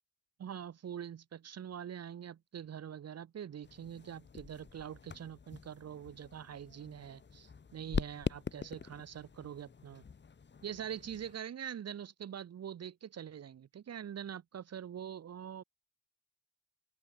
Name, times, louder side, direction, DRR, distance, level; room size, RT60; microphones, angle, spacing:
voice 1, 0.4-10.0 10.6-15.6, right 9 dB, 55° right, 3.0 m, -44 dB
sound 1, 3.6-11.4, left 5 dB, 35° left, 5.3 m, -43 dB
open air
cardioid pair, 90°, 30 cm